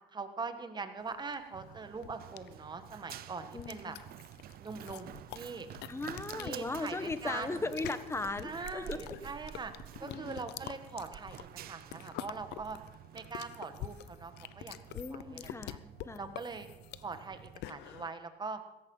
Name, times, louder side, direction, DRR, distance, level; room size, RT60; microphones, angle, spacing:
voice 1, 0.1-4.0 4.6-5.7 6.4-7.6 8.4-9.7 10.0-12.8 13.1-14.8 15.1-15.8 16.2-16.7 17.0-18.6, right 4 dB, 25° right, 8 dB, 1.6 m, -42 dB
sound 1, 1.1-18.1, left 14 dB, 85° left, 0.7 m, -47 dB
Run, 1.5-17.6, right 12 dB, 65° right, 0.7 m, -50 dB
voice 2, 3.5-4.0 5.9-9.2 10.0-10.4 14.9-16.3, left 3 dB, 15° left, 11 dB, 1.3 m, -38 dB
17.0 x 13.5 x 5.6 m, 0.98 s
cardioid pair, 110°, 17 cm